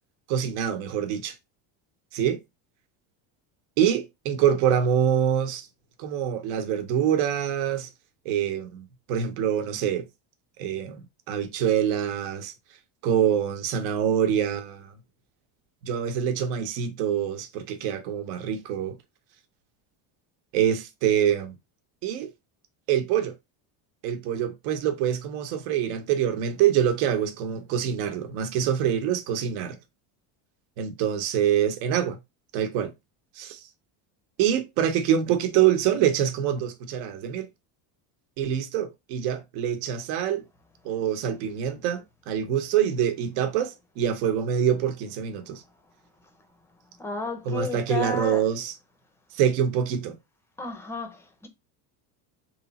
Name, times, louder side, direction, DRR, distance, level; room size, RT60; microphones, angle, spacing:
voice 1, 0.3-1.3 2.1-2.4 3.8-5.7 6.0-7.9 8.2-10.0 10.6-12.5 13.0-14.9 15.8-19.0 20.5-21.6 22.0-22.3 22.9-23.3 24.0-29.8 30.8-32.2 32.5-32.9 33.4-33.6 34.4-37.5 38.4-40.4 40.8-45.6 47.5-48.7 49.3-50.2, right 9 dB, 80° right, 0.9 m, -25 dB
voice 2, 47.0-48.4 50.6-51.5, left 2 dB, 5° left, 0.5 m, -32 dB
3.3 x 2.9 x 4.0 m
cardioid pair, 150°, 46 cm